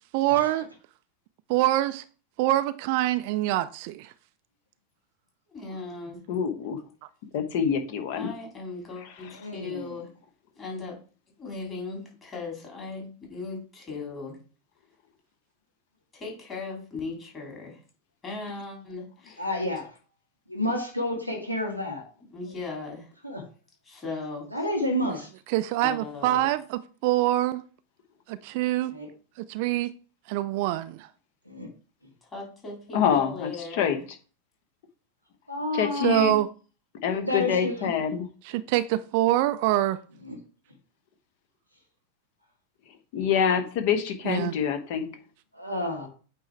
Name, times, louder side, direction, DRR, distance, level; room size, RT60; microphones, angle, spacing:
voice 1, 0.1-0.7 1.5-2.0 2.4-4.1 25.5-27.6 28.3-28.9 29.5-29.9 30.3-31.1 36.0-36.5 38.4-40.0 44.2-44.5, right 15 dB, 45° right, 0.3 m, -25 dB
voice 2, 5.5-6.2 8.1-10.1 10.6-11.0 11.4-14.4 16.1-17.8 18.2-19.5 22.3-23.1 23.8-24.4 25.8-26.5 32.2-34.0, left 3 dB, 20° left, 3.0 m, -38 dB
voice 3, 6.3-6.8 7.3-8.3 32.9-34.0 35.7-36.3 37.0-38.3 43.1-45.1, left 7 dB, 50° left, 1.0 m, -26 dB
voice 4, 9.4-9.9 19.4-19.9 20.5-22.0 23.2-23.4 24.5-25.3 28.9-29.1 31.5-31.7 35.5-36.4 37.1-37.9 40.3-40.4 45.5-46.1, left 1 dB, 90° left, 1.6 m, -30 dB
8.5 x 3.0 x 4.7 m
figure-of-eight pair, 90°, 0 cm